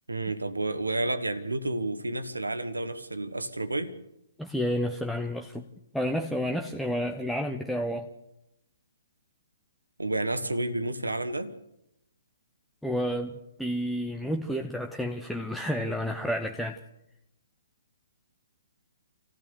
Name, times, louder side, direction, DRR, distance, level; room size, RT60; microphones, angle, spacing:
voice 1, 0.1-3.9 10.0-11.5, right 2 dB, 75° right, 1.8 m, -30 dB
voice 2, 4.4-5.6 5.9-8.1 12.8-16.8, equal, ahead, 1.0 m, -30 dB
27.0 x 16.0 x 7.1 m
figure-of-eight pair, 125°, 0 cm